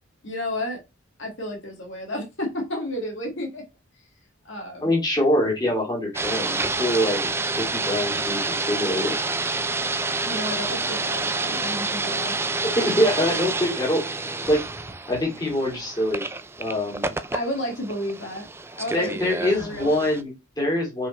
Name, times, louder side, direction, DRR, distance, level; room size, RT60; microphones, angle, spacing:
voice 1, 0.2-0.8 1.2-3.6 4.4-4.9 10.3-12.4 17.3-18.5 18.8-19.9, left 1 dB, 60° left, 2.1 m, -31 dB
voice 2, 4.8-7.3 7.6-9.1 12.7-14.0 14.5-14.6 15.1-16.2 16.6-17.1 18.9-21.1, left 1 dB, 20° left, 2.8 m, -24 dB
sound 1, 6.1-20.2, right 3 dB, 10° right, 0.4 m, -28 dB
5.6 x 5.0 x 4.2 m
head